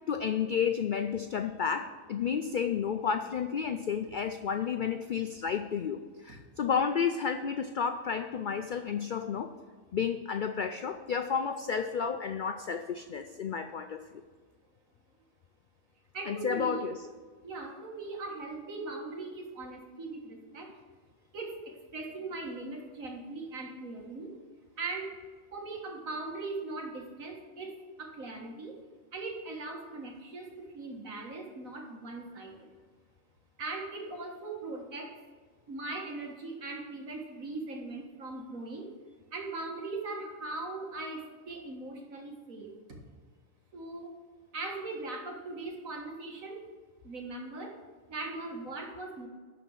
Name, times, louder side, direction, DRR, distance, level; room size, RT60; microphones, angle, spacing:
voice 1, 0.1-9.5 9.9-14.2 16.3-17.0, left 7 dB, 75° left, 8 dB, 0.4 m, -31 dB
voice 2, 16.1-16.9 17.4-20.7 21.3-24.3 24.8-25.1 25.5-27.7 28.0-28.8 29.1-32.7 33.6-35.1 35.7-38.9 39.3-42.7 43.7-44.1 44.5-46.6 47.0-47.7 48.1-49.3, right 3 dB, 80° right, 0 dB, 2.1 m, -39 dB
12.0 x 4.3 x 7.0 m, 1.5 s
omnidirectional pair, 1.4 m